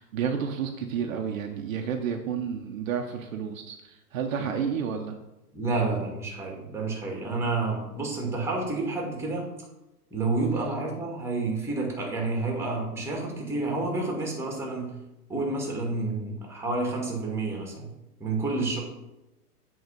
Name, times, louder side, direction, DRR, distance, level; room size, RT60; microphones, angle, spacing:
voice 1, 0.0-5.2, right 7 dB, 55° right, 4 dB, 1.0 m, -31 dB
voice 2, 5.5-9.5 10.1-14.9 15.3-17.9 18.2-18.8, right 3 dB, 5° right, 0 dB, 1.9 m, -29 dB
8.0 x 3.9 x 5.2 m, 0.96 s
hypercardioid pair, 120°, 47 cm